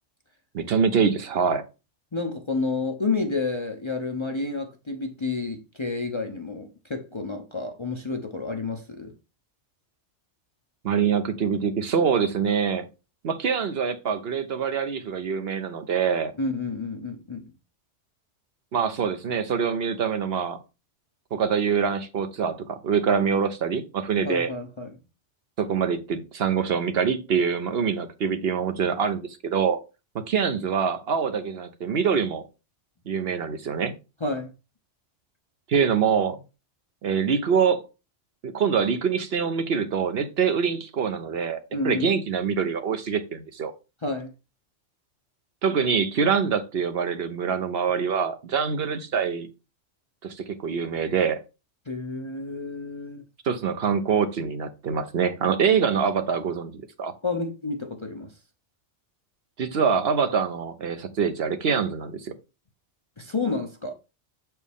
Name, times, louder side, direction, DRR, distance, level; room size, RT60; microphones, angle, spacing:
voice 1, 0.5-1.6 10.8-12.9 13.2-16.3 18.7-20.6 21.3-24.5 25.6-29.8 30.1-32.4 33.1-33.9 35.7-36.4 37.0-37.8 38.4-41.6 41.8-43.7 45.6-49.5 50.2-51.4 53.4-56.7 57.0-57.1 59.6-62.3, right 6 dB, 60° right, 0.9 m, -25 dB
voice 2, 2.1-9.1 16.4-17.4 24.2-25.0 34.2-34.5 41.7-42.1 44.0-44.3 51.9-53.2 57.2-58.3 63.2-63.9, left 3 dB, 30° left, 0.6 m, -30 dB
7.2 x 4.6 x 3.5 m
omnidirectional pair, 1.2 m